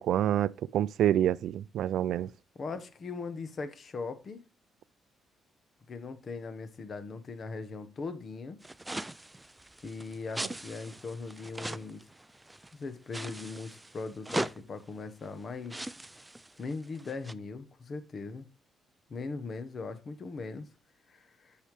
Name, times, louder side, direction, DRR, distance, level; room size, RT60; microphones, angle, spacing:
voice 1, 0.0-2.3, right 11 dB, 75° right, 0.4 m, -27 dB
voice 2, 2.5-4.4 5.9-8.6 9.8-12.0 12.7-15.8 16.6-18.5 19.1-20.7 21.1-21.6, left 4 dB, 45° left, 1.3 m, -39 dB
sound 1, 8.6-12.7 13.1-14.6 15.3-15.4 15.7-17.3, right 1 dB, 10° right, 0.4 m, -39 dB
8.6 x 5.7 x 4.9 m
cardioid pair, 90°, 0 cm